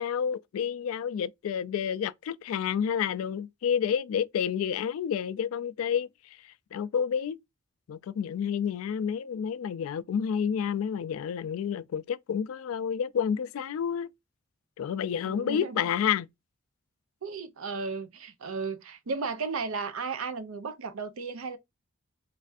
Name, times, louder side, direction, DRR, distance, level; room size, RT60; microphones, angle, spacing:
voice 1, 0.0-6.1 6.7-7.4 7.9-14.1 14.8-16.3, left 8 dB, 80° left, 0.3 m, -29 dB
voice 2, 15.2-15.9 17.2-21.6, right 4 dB, 85° right, 0.6 m, -34 dB
3.2 x 2.4 x 2.4 m
head